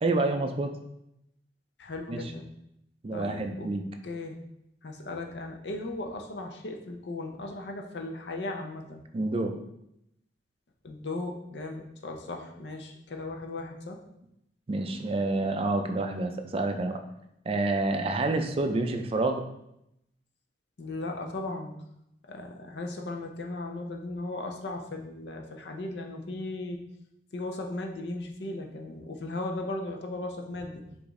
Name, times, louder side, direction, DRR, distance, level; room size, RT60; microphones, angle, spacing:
voice 1, 0.0-0.7 2.1-2.2 3.0-3.8 9.1-9.5 14.7-17.0 17.5-19.4, right 2 dB, 35° right, 6 dB, 0.4 m, -28 dB
voice 2, 1.8-2.4 3.1-3.7 4.0-4.4 4.8-9.0 10.8-14.0 20.8-21.7 22.3-26.8 27.3-30.8, left 2 dB, 75° left, 3 dB, 0.6 m, -37 dB
4.9 x 2.6 x 3.6 m, 0.81 s
head